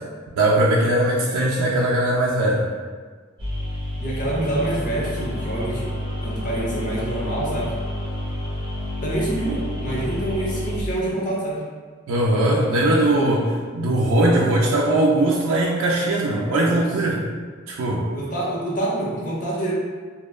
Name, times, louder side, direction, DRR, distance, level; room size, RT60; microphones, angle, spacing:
voice 1, 0.4-2.6 12.1-17.2 17.7-18.1, right 1 dB, 85° right, -4 dB, 0.4 m, -20 dB
sound 1, 3.4-10.8, left 1 dB, 25° right, 0.7 m, -29 dB
voice 2, 4.0-5.9 6.2-7.7 9.0-11.6 16.3-17.2 18.1-19.7, right 1 dB, 40° left, -5 dB, 0.6 m, -27 dB
2.7 x 2.1 x 2.2 m, 1.5 s
head